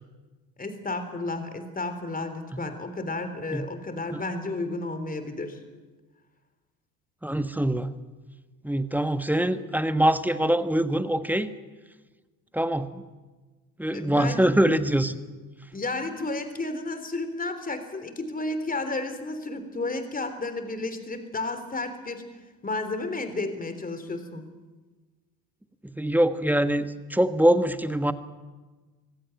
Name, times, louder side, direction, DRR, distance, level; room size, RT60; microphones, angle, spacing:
voice 1, 0.6-5.6 13.9-14.5 15.7-22.2 22.6-24.4, left 2 dB, 15° left, 9 dB, 3.5 m, -32 dB
voice 2, 7.2-7.9 8.6-11.5 12.5-13.0 13.8-15.2 25.8-28.1, right 1 dB, 5° right, 11 dB, 1.4 m, -24 dB
25.0 x 16.0 x 9.2 m, 1.3 s
hypercardioid pair, 70°, 50 cm